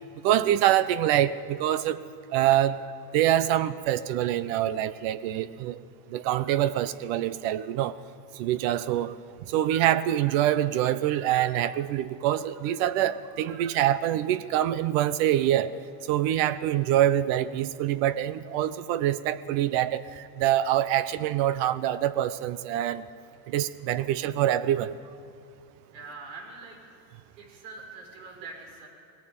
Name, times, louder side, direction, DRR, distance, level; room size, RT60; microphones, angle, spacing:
voice 1, 0.2-2.0 2.3-2.8 3.1-5.8 6.1-8.0 8.4-9.2 9.5-15.7 16.1-23.0 23.5-25.0, right 12 dB, 65° right, 15 dB, 1.0 m, -25 dB
voice 2, 25.9-26.8 27.4-28.9, right 3 dB, 90° right, 1 dB, 5.7 m, -43 dB
19.0 x 18.0 x 9.1 m, 2.5 s
supercardioid pair, 115°, 50 cm